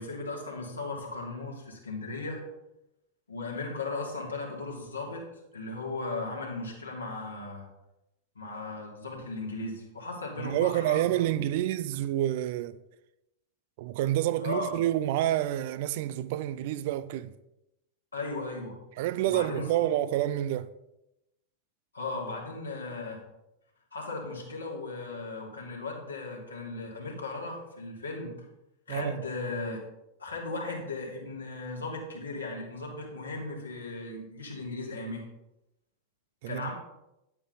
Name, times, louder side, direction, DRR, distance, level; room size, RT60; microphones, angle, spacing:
voice 1, 0.0-2.4 3.3-5.2 5.5-7.7 8.3-11.4 14.4-14.8 18.1-18.8 19.2-19.8 21.9-23.2 23.9-28.3 28.9-29.8 30.2-35.2 36.5-36.7, left 3 dB, 75° left, 2.9 m, -36 dB
voice 2, 10.4-12.8 13.8-17.3 19.0-20.7 28.9-29.2 36.4-36.7, right 13 dB, 50° right, 0.4 m, -28 dB
10.5 x 8.7 x 4.0 m
figure-of-eight pair, 90°, 0 cm